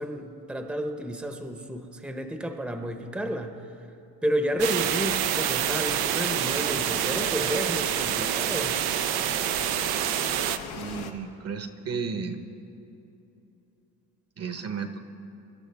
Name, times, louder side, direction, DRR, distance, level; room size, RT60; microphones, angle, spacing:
voice 1, 0.0-3.6 4.2-8.8, equal, 5° right, 5 dB, 0.9 m, -31 dB
sound 1, 4.6-11.1, left 7 dB, 75° left, 1.3 m, -38 dB
sound 2, 4.6-10.6, right 12 dB, 80° right, 0.7 m, -27 dB
voice 2, 10.7-12.4 14.4-15.0, right 5 dB, 40° right, 7 dB, 1.0 m, -33 dB
25.0 x 12.0 x 3.5 m, 2.9 s
cardioid pair, 100°, 36 cm